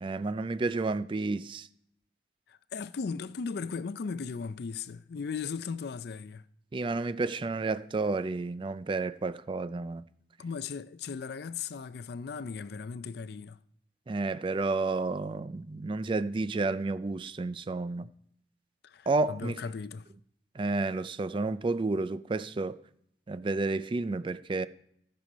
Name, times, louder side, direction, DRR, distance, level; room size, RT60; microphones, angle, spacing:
voice 1, 0.0-1.7 6.7-10.0 14.1-18.1 19.1-19.6 20.6-22.8 23.3-24.7, right 3 dB, 30° right, 0.3 m, -31 dB
voice 2, 2.5-6.4 10.4-13.6 18.8-20.1, left 5 dB, 60° left, 0.4 m, -37 dB
14.0 x 6.8 x 5.1 m
head